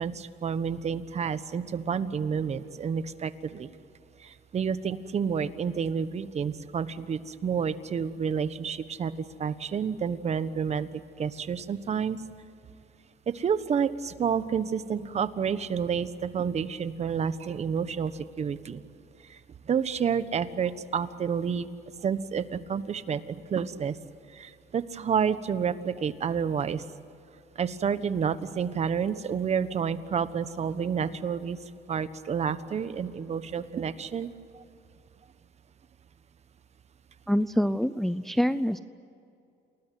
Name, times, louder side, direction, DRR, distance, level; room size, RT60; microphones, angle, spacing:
voice 1, 0.0-3.7 4.2-9.1 9.4-10.9 11.2-12.2 13.3-18.8 19.7-21.7 22.0-23.9 24.3-26.8 27.6-31.6 31.9-34.3, right 7 dB, 40° right, 13 dB, 1.3 m, -29 dB
voice 2, 37.3-38.8, equal, ahead, 13 dB, 0.6 m, -25 dB
29.0 x 19.5 x 9.5 m, 2.5 s
cardioid pair, 110°, 17 cm